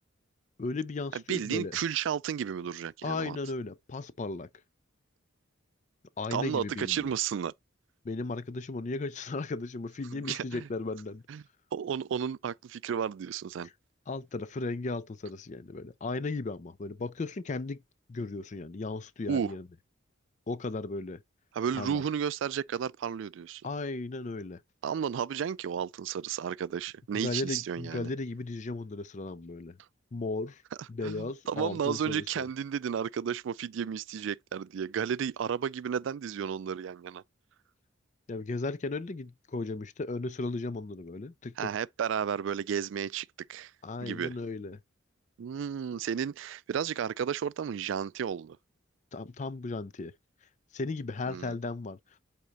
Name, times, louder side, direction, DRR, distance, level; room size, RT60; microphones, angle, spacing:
voice 1, 0.6-1.7 3.0-4.5 6.2-7.1 8.0-11.2 13.6-13.7 14.1-17.8 18.1-19.7 20.5-21.2 21.7-22.0 23.6-24.6 27.1-29.8 30.1-30.6 30.9-32.5 38.3-41.7 43.8-44.8 49.1-50.1 50.7-52.0, left 3 dB, 35° left, 0.4 m, -36 dB
voice 2, 1.1-3.4 6.3-7.5 10.1-10.7 11.3-11.4 11.7-13.7 19.3-19.5 21.5-23.6 24.8-28.1 31.0-37.2 41.6-43.7 44.0-44.3 45.4-48.6 51.3-51.6, right 8 dB, 65° right, 0.3 m, -33 dB
8.2 x 3.6 x 4.1 m
head